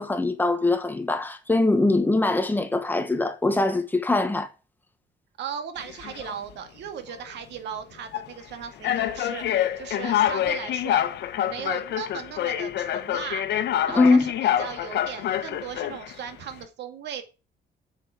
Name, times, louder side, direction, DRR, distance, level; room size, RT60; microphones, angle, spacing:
voice 1, 0.0-4.5 13.9-14.3, left 2 dB, 10° left, 1.2 m, -22 dB
voice 2, 5.4-11.0 11.4-13.4 13.9-17.2, right 8 dB, 80° right, 2.2 m, -37 dB
sound 1, 5.8-6.3 7.1-7.3 8.1-8.3 8.8-16.1, left 11 dB, 75° left, 1.3 m, -26 dB
8.0 x 7.9 x 5.0 m
cardioid pair, 175°, 18 cm